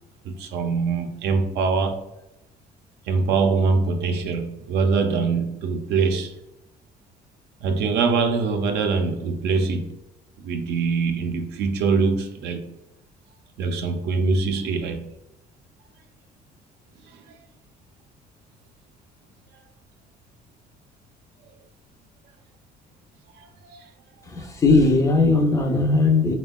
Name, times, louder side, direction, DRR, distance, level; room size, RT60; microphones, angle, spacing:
voice 1, 0.3-2.0 3.1-6.3 7.6-9.9 10.4-12.7 13.6-15.1 23.4-23.8, right 4 dB, 80° right, 0.4 m, -23 dB
voice 2, 24.2-26.4, left 3 dB, 20° left, 0.4 m, -18 dB
3.3 x 2.1 x 2.2 m
cardioid pair, 110°, 17 cm